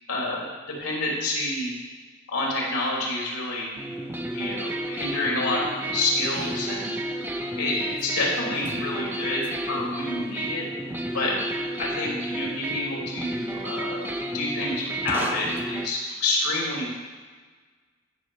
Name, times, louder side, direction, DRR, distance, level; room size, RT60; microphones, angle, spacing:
voice 1, 0.1-1.7 2.3-3.7 4.3-7.0 7.6-10.6 11.1-11.4 11.8-16.9, left 2 dB, 85° left, -3 dB, 3.0 m, -28 dB
sound 1, 3.8-15.9, right 1 dB, 10° right, 0.5 m, -32 dB
14.5 x 5.4 x 4.9 m, 1.4 s
head